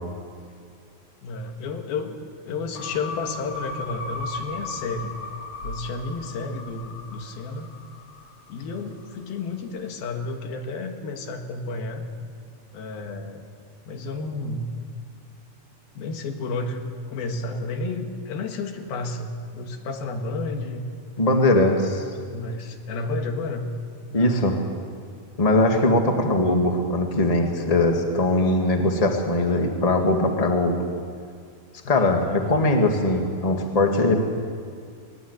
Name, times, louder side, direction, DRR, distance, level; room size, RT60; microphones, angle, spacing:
voice 1, 1.2-2.2 2.5-5.1 5.6-7.7 8.5-12.0 12.7-13.5 13.9-14.6 16.0-20.9 22.3-23.7 24.1-24.4 31.9-32.1, left 3 dB, 90° left, 5 dB, 3.6 m, -31 dB
sound 1, 2.7-9.1, left 3 dB, 45° left, 7.0 m, -37 dB
voice 2, 21.2-22.0 24.1-24.6 25.4-30.8 31.9-34.1, left 2 dB, 20° left, 3 dB, 0.9 m, -21 dB
21.0 x 19.5 x 8.1 m, 2.2 s
omnidirectional pair, 4.2 m